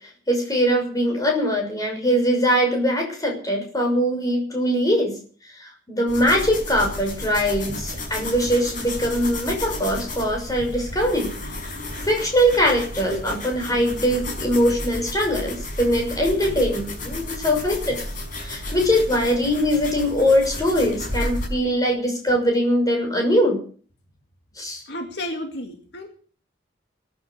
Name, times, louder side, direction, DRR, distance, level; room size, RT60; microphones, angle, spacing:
voice 1, 0.3-5.2 5.6-11.3 11.6-11.7 12.0-18.0 18.4-23.6 24.6-24.8, equal, 20° left, 1 dB, 6.3 m, -22 dB
sound 1, 6.1-21.5, left 1 dB, 45° left, 5.4 m, -32 dB
voice 2, 24.9-26.1, left 1 dB, 65° left, 3 dB, 2.4 m, -33 dB
19.5 x 11.0 x 6.6 m, 0.43 s
head